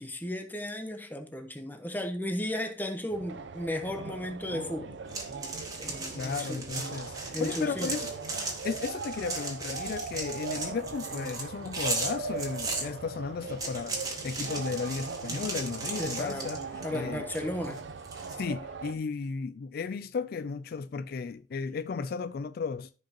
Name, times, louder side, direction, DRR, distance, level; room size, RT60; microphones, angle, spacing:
voice 1, 0.0-5.0 5.8-6.6 7.3-8.0 16.0-16.5 16.8-17.8, left 1 dB, 10° left, 1.1 m, -35 dB
sound 1, 3.1-18.9, right 4 dB, 85° right, 0.7 m, -40 dB
sound 2, 5.1-12.9 13.4-17.0 17.3-18.3, right 3 dB, 20° right, 1.7 m, -37 dB
voice 2, 6.2-8.1 8.6-17.5 18.3-22.9, left 5 dB, 55° left, 0.3 m, -35 dB
14.0 x 5.2 x 2.9 m
head